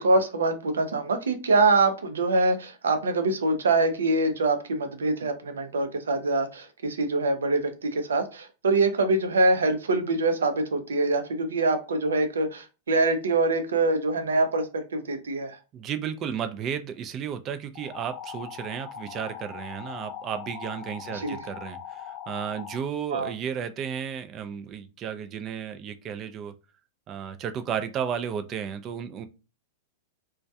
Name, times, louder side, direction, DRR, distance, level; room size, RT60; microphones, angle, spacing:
voice 1, 0.0-14.7 14.9-15.6 21.1-21.4 23.1-23.3, right 2 dB, 90° right, 7 dB, 0.5 m, -24 dB
voice 2, 15.7-26.5 27.1-29.3, right 8 dB, 35° right, 9 dB, 0.4 m, -33 dB
sound 1, 17.7-22.8, left 8 dB, 50° left, 0.6 m, -40 dB
2.2 x 2.2 x 2.7 m, 0.30 s
hypercardioid pair, 120°, 0 cm